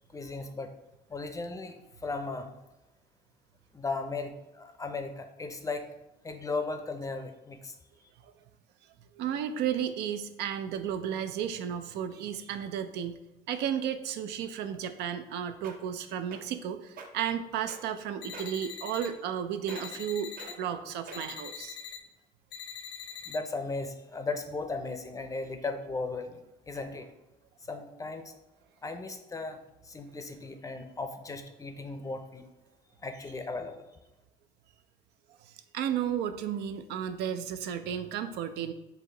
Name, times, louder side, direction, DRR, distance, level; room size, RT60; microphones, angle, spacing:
voice 1, 0.1-0.7 1.1-2.5 3.7-5.9 6.2-7.8 23.3-27.1 27.7-28.3 28.8-32.4 33.0-33.8, left 3 dB, 20° left, 7 dB, 0.5 m, -36 dB
voice 2, 9.1-13.2 13.5-21.8 35.4-38.7, right 9 dB, 80° right, 9 dB, 0.4 m, -33 dB
Shoes scrapes on concrete, 15.3-15.4 15.6-15.9 16.3-16.6 16.9-17.1 17.7-18.0 18.3-18.6 19.0-19.4 19.7-20.0 20.4-20.5 21.1-21.4 22.1-22.2, right 5 dB, 55° right, 0.8 m, -45 dB
sound 1, 18.2-19.1 19.7-20.5 21.1-22.0 22.5-23.4, left 7 dB, 80° left, 0.7 m, -42 dB
4.5 x 2.8 x 3.8 m, 0.98 s
cardioid pair, 110°, 17 cm